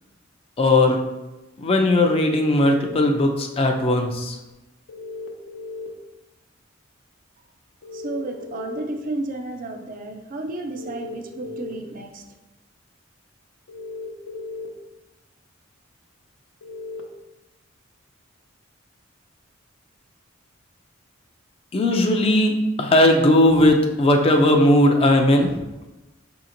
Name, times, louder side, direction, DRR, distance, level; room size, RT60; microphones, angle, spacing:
voice 1, 0.6-1.0 1.6-4.4 21.7-25.6, left 1 dB, 30° left, 3 dB, 0.4 m, -18 dB
sound 1, 1.9-2.9 4.9-5.9 7.8-8.8 10.7-11.7 13.7-14.7 16.6-17.0, left 3 dB, 80° left, 0.6 m, -36 dB
voice 2, 7.9-12.2, right 2 dB, 40° right, 5 dB, 0.4 m, -32 dB
5.5 x 2.9 x 2.5 m, 1.0 s
head